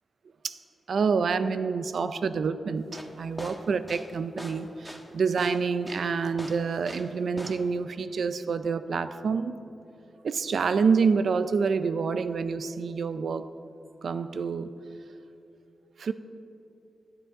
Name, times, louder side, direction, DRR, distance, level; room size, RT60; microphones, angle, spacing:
voice 1, 0.9-9.6 10.2-13.5 14.0-14.7 16.0-16.1, right 5 dB, 75° right, 12 dB, 0.5 m, -27 dB
sound 1, 2.8-7.1 7.4-7.8, equal, 5° right, 1.4 m, -41 dB
18.0 x 10.0 x 3.8 m, 2.9 s
cardioid pair, 80°, 0 cm